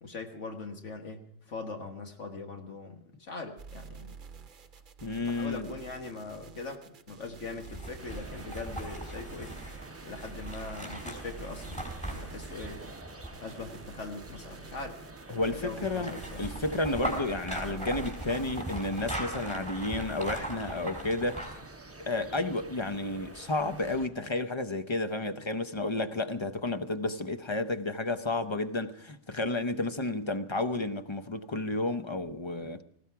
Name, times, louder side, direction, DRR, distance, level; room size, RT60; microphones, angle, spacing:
voice 1, 0.0-4.2 5.2-9.6 10.0-12.9 13.4-15.0 15.4-16.5, left 3 dB, 70° left, 1.8 m, -41 dB
sound 1, 3.6-19.2, right 5 dB, 45° right, 0.9 m, -49 dB
voice 2, 5.0-5.7 15.3-21.6 22.1-32.8, left 2 dB, 30° left, 0.7 m, -32 dB
sound 2, 7.5-13.7 15.4-21.7 22.1-22.2, right 1 dB, 5° left, 3.9 m, -39 dB
sound 3, 8.0-24.1, right 2 dB, 15° right, 0.7 m, -49 dB
19.0 x 16.0 x 4.7 m
omnidirectional pair, 1.3 m